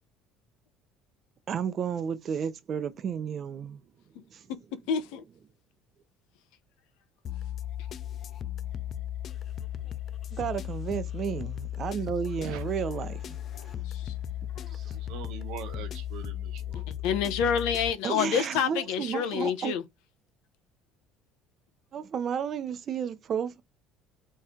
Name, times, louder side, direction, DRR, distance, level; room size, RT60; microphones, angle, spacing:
voice 1, 1.5-3.8 4.2-4.5 10.3-13.8 14.4-15.0 16.7-16.8 18.0-19.8 21.9-23.6, right 7 dB, 35° right, 0.7 m, -33 dB
voice 2, 4.9-5.2 13.6-14.1 14.6-14.7 17.0-19.8, left 7 dB, 80° left, 0.9 m, -28 dB
sound 1, 7.2-17.9, left 11 dB, 35° left, 0.4 m, -36 dB
voice 3, 14.9-16.9, right 9 dB, 75° right, 1.2 m, -42 dB
4.3 x 3.2 x 3.6 m
cardioid pair, 160°, 0 cm